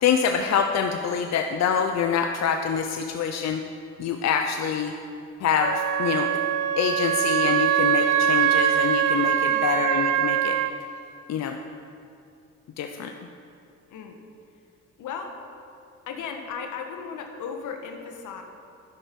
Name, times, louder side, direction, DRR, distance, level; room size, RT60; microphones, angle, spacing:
voice 1, 0.0-3.6 4.0-4.9 5.4-6.3 6.8-10.6 11.3-11.6 12.8-13.1, left 7 dB, 60° left, 4 dB, 0.7 m, -25 dB
Wind instrument woodwind instrument, 5.6-10.7, right 10 dB, 75° right, 0.7 m, -23 dB
voice 2, 13.9-14.2 15.0-15.4 16.1-18.4, left 6 dB, 80° left, 4 dB, 1.5 m, -36 dB
12.0 x 10.0 x 5.4 m, 2.6 s
cardioid pair, 90°, 30 cm